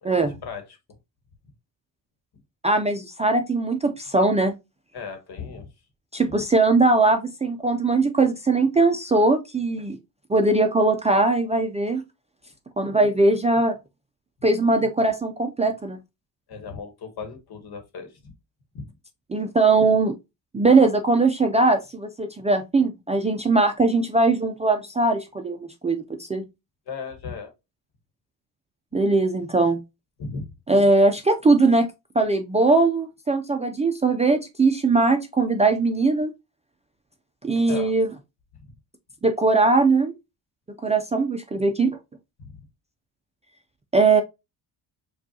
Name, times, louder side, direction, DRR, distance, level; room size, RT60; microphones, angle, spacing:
voice 1, 0.0-0.8 4.9-5.7 16.5-18.3 18.7-18.9 26.9-27.5 30.2-30.4 37.7-37.9 38.6-38.7 42.4-42.6, left 5 dB, 60° left, 1.2 m, -36 dB
voice 2, 2.6-4.5 6.1-10.0 10.3-12.0 12.8-13.8 14.4-16.0 19.3-20.1 20.5-26.0 26.3-26.4 28.9-29.8 30.7-31.9 32.2-36.3 37.4-38.1 39.2-40.1 40.8-42.0 43.9-44.2, right 3 dB, 15° right, 0.3 m, -20 dB
4.9 x 2.4 x 2.7 m
cardioid pair, 100°, 43 cm